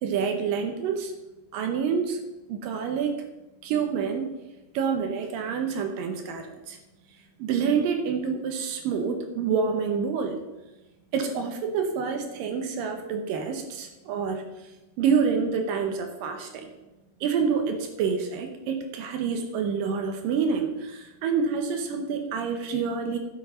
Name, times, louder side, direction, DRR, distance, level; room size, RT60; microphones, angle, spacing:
voice 1, 0.0-1.1 1.5-2.2 2.5-3.1 3.6-4.3 4.7-6.8 7.4-10.4 11.1-14.4 15.0-16.7 17.2-23.2, right 6 dB, 85° right, 5 dB, 2.7 m, -27 dB
11.0 x 6.5 x 5.6 m, 1.0 s
omnidirectional pair, 3.8 m